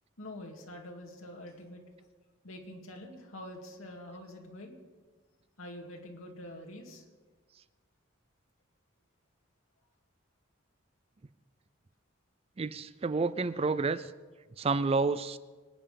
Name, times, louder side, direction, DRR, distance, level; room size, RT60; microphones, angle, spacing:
voice 1, 0.2-1.8 2.4-4.8 5.6-7.0, left 1 dB, 80° left, 1 dB, 2.4 m, -46 dB
voice 2, 12.6-14.1 14.6-15.4, right 4 dB, 30° right, 15 dB, 0.4 m, -29 dB
24.5 x 9.0 x 5.2 m, 1.4 s
head